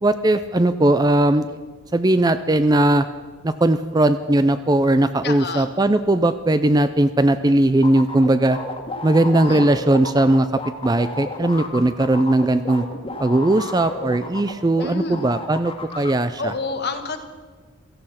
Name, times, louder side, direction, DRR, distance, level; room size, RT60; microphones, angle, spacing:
voice 1, 0.0-1.5 1.9-3.1 3.4-8.6 9.0-10.5 10.8-12.8 13.2-16.5, right 1 dB, 15° right, 11 dB, 0.4 m, -18 dB
voice 2, 5.2-5.7 9.5-9.7 14.8-15.3 16.4-17.2, left 4 dB, 45° left, 6 dB, 1.5 m, -29 dB
sound 1, 7.8-14.9 15.1-16.1, left 2 dB, 25° left, 1.7 m, -32 dB
17.0 x 14.5 x 5.8 m, 1.5 s
head